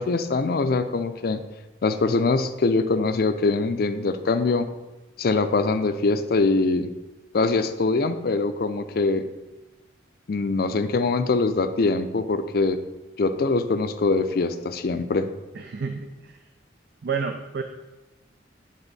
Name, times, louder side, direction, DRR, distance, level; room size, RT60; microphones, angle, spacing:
voice 1, 0.0-1.4 1.8-4.7 5.2-6.9 7.3-9.2 10.3-12.8 13.2-15.3, left 3 dB, 55° left, 9 dB, 0.4 m, -23 dB
voice 2, 15.5-16.5 17.0-17.6, right 5 dB, 55° right, 6 dB, 0.4 m, -30 dB
8.9 x 3.6 x 4.0 m, 1.1 s
head